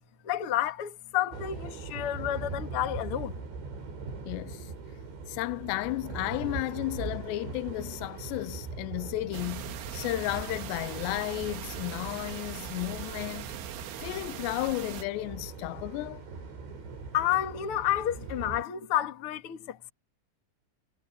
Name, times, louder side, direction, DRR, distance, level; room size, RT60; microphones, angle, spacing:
voice 1, 0.2-3.4 17.1-19.9, left 12 dB, 50° left, 1.7 m, -30 dB
sound 1, 1.3-18.6, right 4 dB, 70° right, 9.5 m, -41 dB
voice 2, 4.3-4.7 5.3-16.3, left 19 dB, 80° left, 2.6 m, -34 dB
sound 2, 9.3-15.0, right 10 dB, 90° right, 4.3 m, -41 dB
omnidirectional pair, 5.4 m